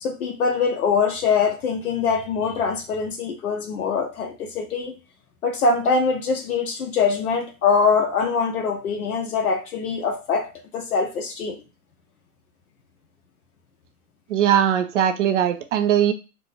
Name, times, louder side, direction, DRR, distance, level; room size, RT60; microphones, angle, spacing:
voice 1, 0.0-4.9 5.4-10.5 10.7-11.6, left 5 dB, 75° left, 3 dB, 0.8 m, -23 dB
voice 2, 14.3-16.1, right 10 dB, 55° right, 8 dB, 0.5 m, -20 dB
2.5 x 2.2 x 3.8 m, 0.30 s
hypercardioid pair, 130°, 44 cm